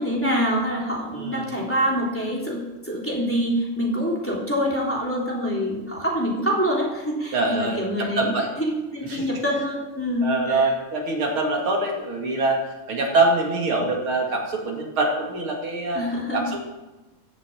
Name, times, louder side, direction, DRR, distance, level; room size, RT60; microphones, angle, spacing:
voice 1, 0.0-8.3 8.6-10.7 15.9-16.5, equal, 5° left, -3 dB, 3.3 m, -25 dB
voice 2, 1.1-1.5 7.3-8.5 9.1-9.3 10.2-12.6 12.9-16.0 16.3-16.6, right 2 dB, 80° right, 0 dB, 3.3 m, -24 dB
15.5 x 7.6 x 8.5 m, 1.1 s
omnidirectional pair, 2.3 m